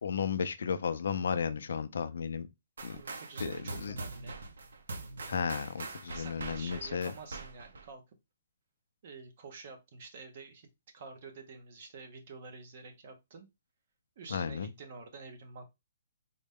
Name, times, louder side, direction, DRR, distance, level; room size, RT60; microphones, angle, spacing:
voice 1, 0.0-2.5 2.8-3.0 3.4-3.9 5.3-7.1 14.3-14.7, left 6 dB, 60° left, 0.4 m, -34 dB
sound 1, 2.8-7.9, right 3 dB, 80° right, 0.7 m, -43 dB
voice 2, 2.9-4.4 6.1-8.0 9.0-10.7 10.9-13.5 14.2-15.7, right 4 dB, 35° right, 0.7 m, -49 dB
3.8 x 2.1 x 3.4 m
hypercardioid pair, 180°, 0 cm